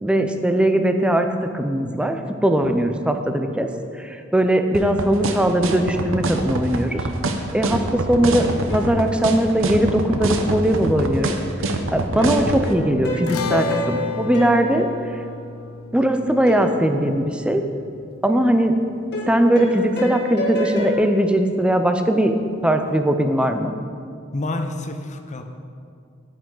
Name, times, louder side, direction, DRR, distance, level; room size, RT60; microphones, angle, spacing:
voice 1, 0.0-1.3 1.5-3.7 4.0-7.0 7.5-8.5 8.7-11.4 11.9-14.9 15.9-17.6 18.2-18.8 19.3-22.3 22.6-23.7, right 1 dB, 5° right, 6 dB, 0.5 m, -20 dB
sound 1, 4.7-12.6, right 2 dB, 65° right, 0.8 m, -24 dB
sound 2, 8.7-10.2 12.2-15.8 16.5-18.0 19.1-21.0, left 1 dB, 55° left, 1.8 m, -29 dB
sound 3, 13.3-19.8, left 4 dB, 75° left, 0.6 m, -34 dB
voice 2, 24.3-25.4, left 2 dB, 35° left, 6 dB, 0.7 m, -28 dB
9.9 x 9.2 x 3.9 m, 2.3 s
head